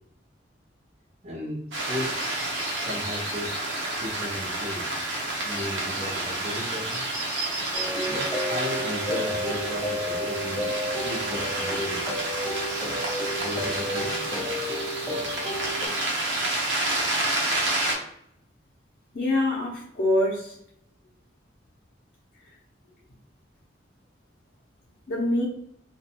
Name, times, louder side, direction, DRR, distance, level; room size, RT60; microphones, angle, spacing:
voice 1, 1.2-2.1 2.8-3.6 4.0-4.9 5.4-7.0 8.1-10.7 11.0-12.0 13.4-14.2, left 1 dB, 35° right, -6 dB, 0.6 m, -35 dB
sound 1, 1.7-18.0, right 1 dB, 70° right, 0.8 m, -29 dB
sound 2, 7.7-15.9, equal, 15° left, 0.4 m, -32 dB
voice 2, 19.1-20.6 25.1-25.4, left 1 dB, 50° left, -6 dB, 0.6 m, -24 dB
2.5 x 2.3 x 2.7 m, 0.71 s
head